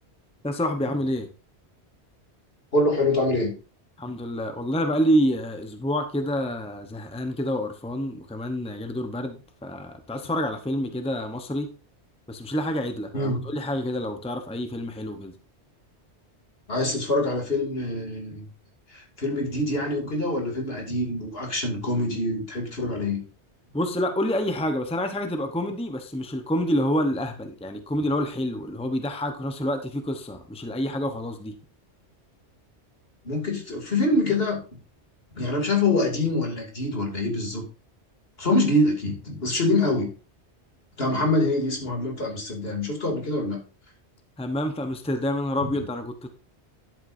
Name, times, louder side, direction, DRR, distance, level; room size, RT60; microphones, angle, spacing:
voice 1, 0.4-1.3 4.0-11.7 12.3-15.3 23.7-31.5 44.4-46.3, equal, 5° left, 6 dB, 0.9 m, -28 dB
voice 2, 2.7-3.5 13.1-13.5 16.7-18.4 18.9-23.2 33.2-34.6 35.4-37.6 38.4-40.1 41.0-43.6, left 2 dB, 60° left, 1 dB, 3.0 m, -25 dB
11.0 x 8.2 x 2.7 m, 0.35 s
omnidirectional pair, 1.1 m